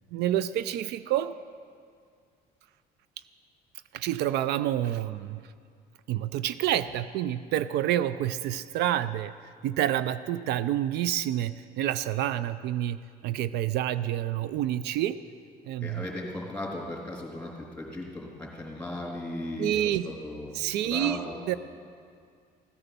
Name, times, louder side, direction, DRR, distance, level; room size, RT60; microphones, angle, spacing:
voice 1, 0.1-1.3 3.9-5.4 6.1-9.3 9.6-13.0 13.2-15.2 15.7-16.1 19.6-20.1 20.5-21.5, right 12 dB, 80° right, 15 dB, 0.4 m, -28 dB
voice 2, 15.8-17.5 17.8-20.5 20.8-21.3, left 1 dB, 10° left, -2 dB, 3.3 m, -37 dB
15.5 x 9.7 x 6.8 m, 2.2 s
cardioid pair, 110°, 17 cm